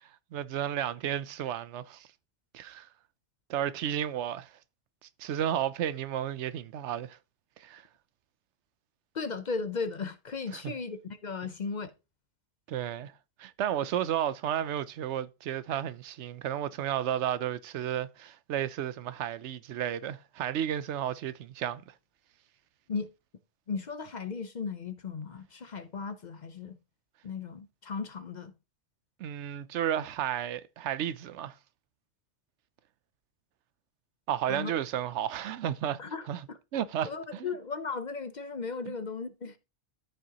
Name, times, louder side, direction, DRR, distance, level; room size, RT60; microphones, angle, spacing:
voice 1, 0.0-2.1 2.5-2.9 3.5-4.5 5.2-7.2 7.6-7.8 10.5-10.7 12.7-13.1 13.4-21.9 29.2-31.5 34.3-36.0 36.3-36.4 36.7-37.5 38.9-39.0, right 10 dB, 80° right, 0.9 m, -32 dB
voice 2, 9.1-11.9 22.9-23.1 23.7-26.8 27.2-28.5 34.5-34.7 36.0-36.6 37.0-39.6, left 4 dB, 45° left, 0.7 m, -36 dB
13.5 x 5.4 x 2.9 m
omnidirectional pair, 1.2 m